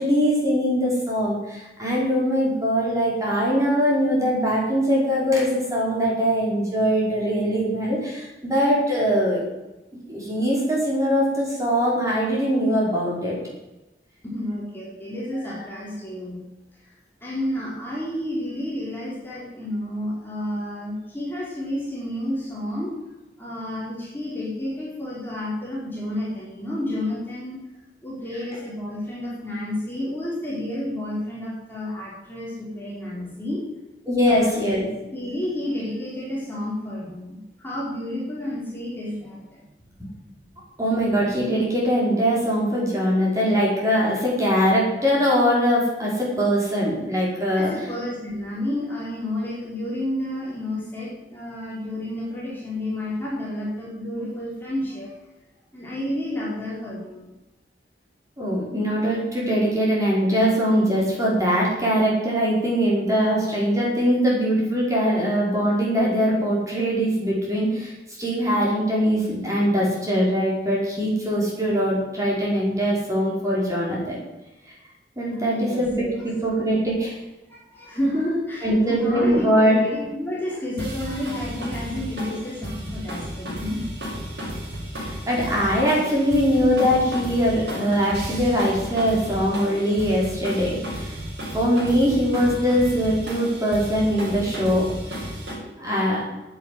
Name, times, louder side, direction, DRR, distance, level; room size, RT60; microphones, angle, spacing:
voice 1, 0.0-9.5 10.1-13.4 15.3-15.6 34.1-34.9 40.0-40.1 40.8-47.7 58.4-74.2 75.2-76.0 76.2-77.1 78.6-79.8 85.3-91.1 91.5-94.9 95.8-96.2, equal, 20° right, -4 dB, 5.1 m, -22 dB
voice 2, 14.2-16.4 16.8-16.9 17.2-23.0 23.4-27.6 28.0-33.6 34.3-34.6 35.1-39.6 47.6-55.1 55.7-57.3 75.3-76.3 77.5-83.9, left 1 dB, 10° left, -6 dB, 4.5 m, -30 dB
sound 1, 80.8-95.5, equal, 80° right, 7.1 m, -33 dB
11.0 x 9.3 x 9.6 m, 0.99 s
head